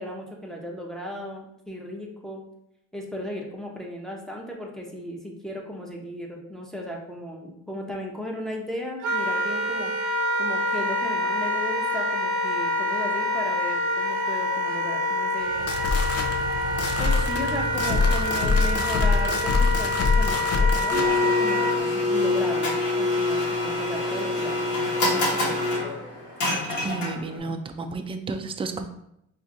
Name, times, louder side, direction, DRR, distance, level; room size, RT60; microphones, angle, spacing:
voice 1, 0.0-2.4 2.9-9.9 10.4-15.7 17.0-25.4, left 1 dB, ahead, -1 dB, 0.7 m, -36 dB
Wind instrument woodwind instrument, 9.0-21.8, left 1 dB, 85° right, 0.6 m, -26 dB
sound 1, 15.4-21.1, left 4 dB, 55° left, 0.6 m, -24 dB
Domestic sounds home sounds, 20.9-27.4, left 2 dB, 80° left, 1.3 m, -25 dB
voice 2, 26.8-28.9, right 3 dB, 20° right, 7 dB, 0.3 m, -32 dB
4.4 x 2.6 x 2.5 m, 0.78 s
cardioid pair, 90°, 30 cm